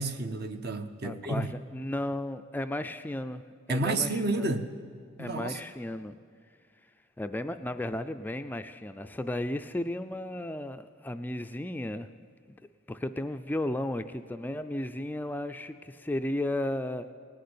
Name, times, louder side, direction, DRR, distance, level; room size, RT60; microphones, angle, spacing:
voice 1, 0.0-1.5 3.7-4.7 5.2-5.6, right 2 dB, 55° right, 0.9 m, -30 dB
voice 2, 1.0-3.4 3.7-4.5 5.2-6.2 7.2-12.1 12.5-12.6 12.9-17.1, left 1 dB, 10° left, 0.3 m, -34 dB
18.5 x 6.7 x 9.5 m
head